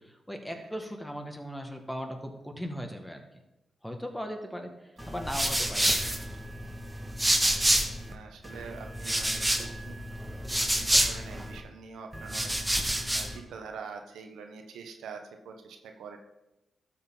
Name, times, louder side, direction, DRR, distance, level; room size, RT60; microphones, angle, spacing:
voice 1, 0.3-3.2 3.8-4.7 5.1-6.1, equal, 5° left, 4 dB, 1.9 m, -37 dB
sound 1, 5.0-8.1 8.4-11.6 12.1-13.4, right 1 dB, 10° right, 1.9 m, -28 dB
voice 2, 7.2-10.2 10.7-16.2, right 5 dB, 85° right, 4 dB, 1.1 m, -45 dB
12.5 x 7.3 x 3.9 m, 0.95 s
supercardioid pair, 50°, 0 cm